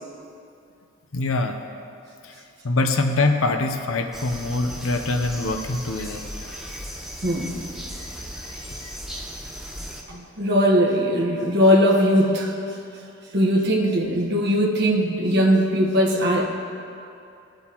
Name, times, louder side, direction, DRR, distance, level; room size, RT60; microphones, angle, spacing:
voice 1, 1.1-1.6 2.2-6.8 7.9-8.9, left 2 dB, 75° left, 5 dB, 0.7 m, -25 dB
sound 1, 4.1-10.0, equal, ahead, 0.8 m, -36 dB
voice 2, 7.2-7.6 10.1-12.5 13.3-16.4, equal, 50° right, -3 dB, 1.3 m, -20 dB
19.5 x 7.7 x 3.0 m, 2.6 s
head